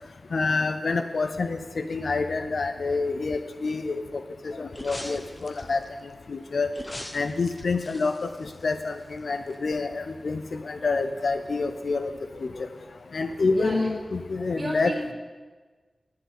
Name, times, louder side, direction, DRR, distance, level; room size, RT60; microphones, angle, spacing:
voice 1, 0.3-5.8 6.3-6.7 7.1-12.1 12.4-12.7 13.1-15.0, left 3 dB, 70° left, 9 dB, 0.6 m, -27 dB
sound 1, 4.7-5.9 6.7-9.2 9.5-9.6, left 1 dB, 20° left, 1.0 m, -41 dB
voice 2, 13.6-13.9 14.6-15.1, right 1 dB, 25° right, -2 dB, 3.5 m, -33 dB
11.0 x 9.3 x 8.3 m, 1.4 s
wide cardioid pair, 100°, 0 cm